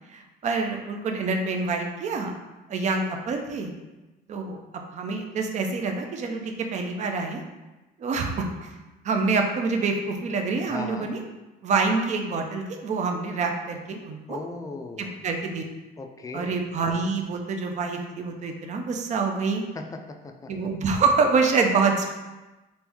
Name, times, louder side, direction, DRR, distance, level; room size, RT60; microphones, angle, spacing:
voice 1, 0.1-2.3 2.7-3.7 4.3-4.6 4.9-7.4 8.0-8.7 9.0-11.2 11.6-14.4 15.0-15.6 16.3-19.6 20.5-22.1, right 4 dB, 45° right, 3 dB, 0.5 m, -26 dB
voice 2, 10.7-11.1 14.3-15.2 16.0-16.6 19.7-20.7, left 3 dB, 20° left, 3 dB, 0.3 m, -37 dB
3.2 x 2.6 x 3.4 m, 1.1 s
cardioid pair, 110°, 17 cm